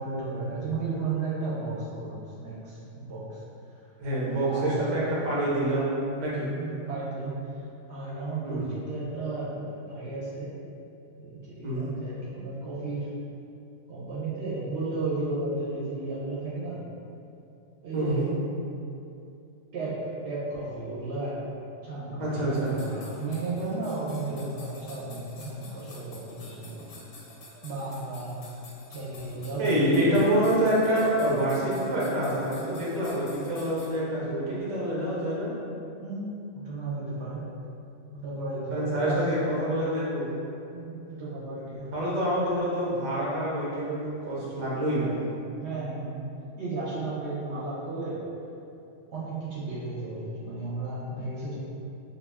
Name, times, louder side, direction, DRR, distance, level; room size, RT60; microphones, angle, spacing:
voice 1, 0.0-3.4 4.4-4.7 6.3-7.5 7.9-10.6 11.2-13.1 13.9-16.8 17.8-18.3 19.7-21.5 21.8-27.0 27.6-28.4 28.9-30.2 36.0-37.5 38.1-39.2 40.7-41.9 45.6-46.3 46.6-48.2 49.1-51.6, right 3 dB, 70° right, -8 dB, 0.9 m, -34 dB
voice 2, 4.0-5.9 6.2-6.5 8.4-8.6 11.6-11.9 17.9-18.3 22.2-22.7 29.6-35.5 38.7-40.3 41.9-45.2, right 1 dB, 45° right, -7 dB, 0.7 m, -26 dB
sound 1, 22.5-33.9, left 2 dB, 90° left, 1.0 m, -49 dB
2.3 x 2.3 x 3.3 m, 2.7 s
omnidirectional pair, 1.3 m